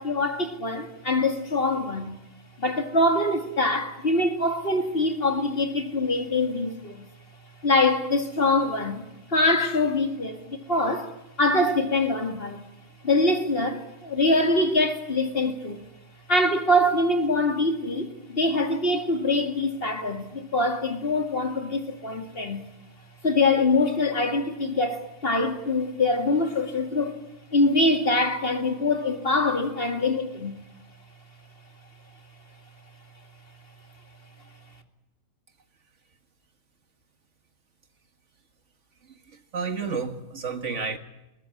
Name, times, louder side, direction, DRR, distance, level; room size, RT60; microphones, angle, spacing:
voice 1, 0.0-2.2 2.6-7.0 7.6-11.1 11.4-12.6 13.0-15.9 16.3-22.6 23.2-27.2 27.5-30.5, left 2 dB, 45° left, 2.5 m, -24 dB
voice 2, 39.0-41.0, right 5 dB, 65° right, 2.1 m, -31 dB
20.5 x 20.0 x 9.8 m
omnidirectional pair, 1.3 m